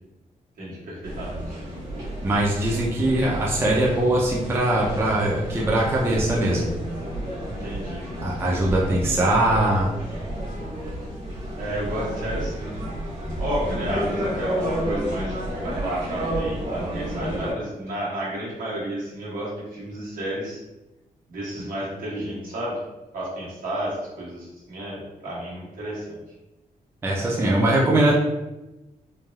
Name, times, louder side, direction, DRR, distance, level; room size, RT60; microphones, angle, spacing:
voice 1, 0.6-1.6 7.4-8.1 11.6-12.7 13.4-15.3 15.6-20.6 21.3-22.8 23.1-26.2, right 1 dB, 75° right, -6 dB, 1.1 m, -31 dB
sound 1, 1.0-17.5, right 1 dB, 50° right, 1.2 m, -31 dB
voice 2, 2.2-6.7 8.2-9.9 27.0-28.1, right 1 dB, 15° right, -4 dB, 0.4 m, -21 dB
3.2 x 2.2 x 2.2 m, 0.99 s
wide cardioid pair, 165°, 15 cm